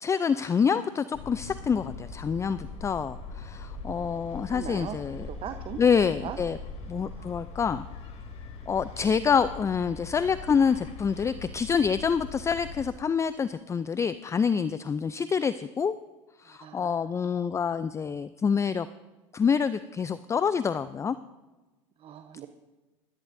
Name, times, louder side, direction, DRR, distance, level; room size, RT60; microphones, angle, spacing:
voice 1, 0.0-5.3 5.8-6.6 6.9-7.8 8.7-15.9 16.4-18.9 19.3-21.2, left 6 dB, 20° left, 14 dB, 0.5 m, -27 dB
sound 1, 1.1-12.9, left 4 dB, 45° left, 2.9 m, -41 dB
voice 2, 4.0-5.8 6.2-6.4 7.1-7.3 16.5-17.1 22.0-22.5, right 9 dB, 35° right, 7 dB, 1.0 m, -41 dB
25.0 x 13.5 x 2.7 m, 1.1 s
hypercardioid pair, 90°, 16 cm